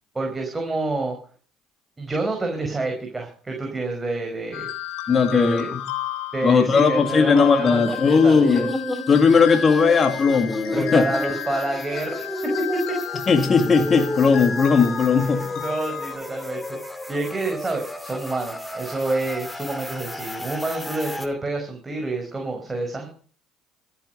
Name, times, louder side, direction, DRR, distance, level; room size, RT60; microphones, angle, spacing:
voice 1, 0.1-1.2 2.0-4.7 5.3-5.7 6.3-8.7 10.7-13.0 15.1-16.8 17.1-23.1, right 2 dB, 15° right, 2 dB, 4.9 m, -28 dB
sound 1, 4.5-16.1, left 10 dB, 70° left, 3.1 m, -33 dB
voice 2, 5.1-5.8 6.4-8.7 9.1-11.0 13.3-15.6, left 5 dB, 35° left, 7 dB, 2.0 m, -18 dB
sound 2, 7.7-21.3, left 1 dB, 10° left, 2.5 m, -32 dB
14.5 x 10.5 x 6.6 m, 0.43 s
supercardioid pair, 90°, 0 cm